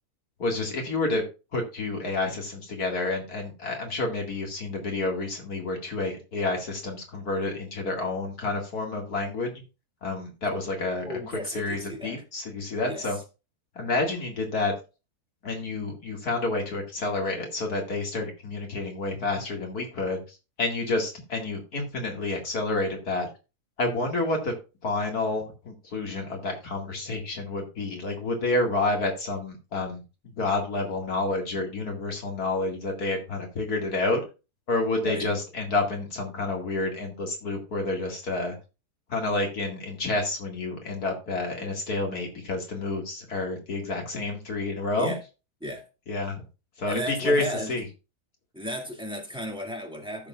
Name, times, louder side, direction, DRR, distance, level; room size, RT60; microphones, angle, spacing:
voice 1, 0.4-1.2 1.5-9.5 10.0-13.2 13.8-14.7 15.4-20.2 20.6-23.3 23.8-24.5 24.8-30.0 30.4-34.2 34.7-38.6 39.1-45.1 46.1-46.4 46.8-47.8, left 2 dB, 70° left, 2 dB, 2.5 m, -29 dB
voice 2, 11.1-12.2 12.9-13.2 35.0-35.3 45.0-45.2 45.6-45.8 46.9-47.7 48.5-50.3, equal, 5° right, 1 dB, 2.1 m, -34 dB
15.0 x 6.8 x 2.4 m, 0.29 s
omnidirectional pair, 1.7 m